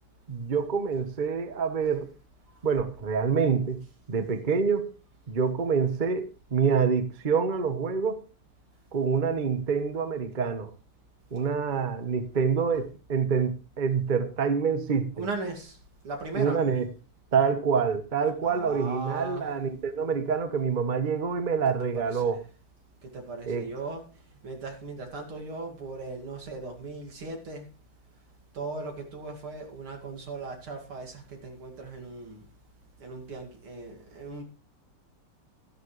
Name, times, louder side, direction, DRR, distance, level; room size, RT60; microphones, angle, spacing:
voice 1, 0.3-2.1 2.6-4.9 5.3-8.2 8.9-10.7 11.3-15.3 16.3-16.9 17.3-22.4 23.4-23.7, right 6 dB, 30° right, 0.9 m, -26 dB
voice 2, 15.1-15.8 16.0-16.6 18.4-19.5 21.7-22.4 23.0-24.1 24.4-27.7 28.5-32.4 33.0-34.4, right 3 dB, 80° right, 3.3 m, -38 dB
13.5 x 12.5 x 3.2 m
omnidirectional pair, 2.3 m